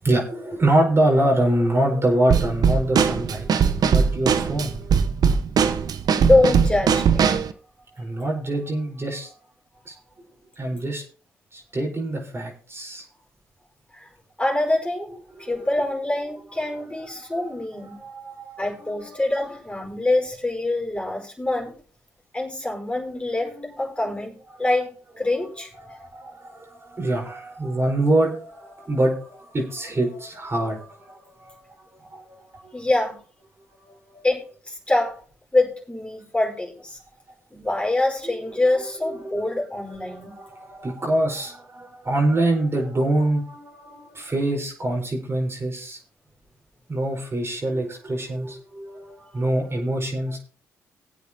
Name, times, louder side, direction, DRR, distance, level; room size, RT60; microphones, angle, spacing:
voice 1, 0.0-5.1 7.9-9.4 9.8-9.9 10.6-11.0 11.5-13.0 15.4-15.5 17.2-17.5 17.9-19.5 23.4-23.8 25.3-25.5 25.8-32.7 33.8-34.2 38.2-38.3 39.2-39.6 40.0-46.0 46.9-50.4, right 1 dB, 35° right, 0 dB, 4.8 m, -25 dB
Drum kit / Snare drum, 2.3-7.5, right 6 dB, 60° right, 0.9 m, -20 dB
voice 2, 6.1-7.5 13.9-14.1 14.4-15.1 15.4-18.0 18.6-21.8 22.3-25.7 32.7-33.2 34.2-35.1 35.5-37.0 37.5-40.3, left 2 dB, 15° left, -1 dB, 5.0 m, -25 dB
20.0 x 8.3 x 2.9 m, 0.40 s
hypercardioid pair, 45°, 7 cm